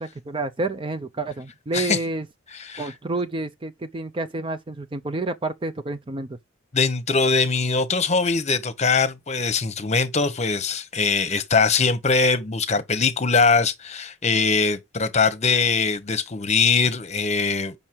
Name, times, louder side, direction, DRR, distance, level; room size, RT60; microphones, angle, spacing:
voice 1, 0.3-2.3 2.8-6.4, right 2 dB, 25° right, 0.5 m, -29 dB
voice 2, 6.7-17.7, left 4 dB, 35° left, 1.0 m, -22 dB
7.3 x 5.5 x 4.5 m
head